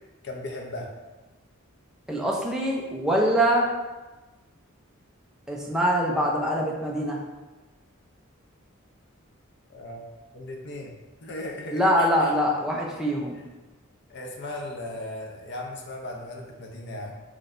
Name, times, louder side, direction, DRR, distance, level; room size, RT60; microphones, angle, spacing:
voice 1, 0.2-0.9 9.7-10.0 10.3-10.9 11.2-12.3 14.1-17.1, left 1 dB, 55° left, 1 dB, 0.7 m, -37 dB
voice 2, 2.1-3.7 5.5-7.2 11.7-13.4, equal, 5° right, -2 dB, 0.6 m, -24 dB
6.0 x 3.2 x 2.6 m, 1.2 s
head